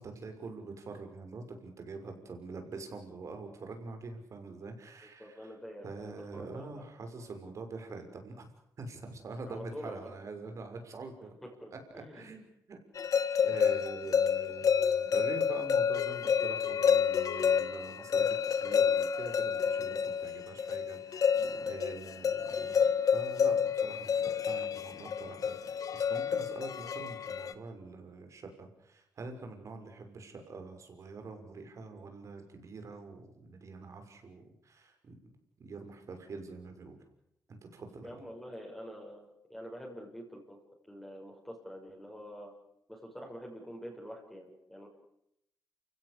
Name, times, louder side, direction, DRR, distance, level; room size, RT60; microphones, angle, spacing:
voice 1, 0.0-5.5 5.8-8.5 8.8-11.3 12.1-12.8 13.4-21.3 21.6-22.9 23.1-35.3 35.6-37.0 37.5-38.2, right 3 dB, 55° right, 5 dB, 6.2 m, -45 dB
voice 2, 5.0-6.9 9.4-10.1 11.2-12.3 38.0-40.6 40.9-42.5 42.9-44.9, equal, 5° left, -2 dB, 6.7 m, -46 dB
sound 1, 13.0-27.5, left 7 dB, 65° left, 1.7 m, -29 dB
28.5 x 17.0 x 8.5 m, 0.80 s
cardioid pair, 85°, 6 cm